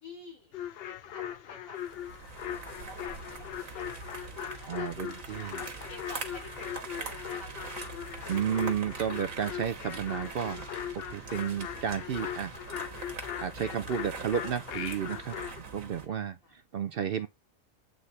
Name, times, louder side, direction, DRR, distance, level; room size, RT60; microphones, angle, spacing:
voice 1, 0.0-1.8 2.4-4.9 5.3-8.0 16.0-16.5, left 2 dB, 85° left, 3.4 m, -49 dB
sound 1, 0.5-15.6, left 10 dB, 60° left, 0.7 m, -40 dB
sound 2, 1.8-16.1, right 4 dB, 80° right, 1.7 m, -43 dB
voice 2, 4.7-5.6 8.3-10.7 10.9-12.5 13.4-15.4 15.7-17.3, right 8 dB, 60° right, 0.6 m, -32 dB
7.9 x 4.1 x 3.2 m
omnidirectional pair, 1.4 m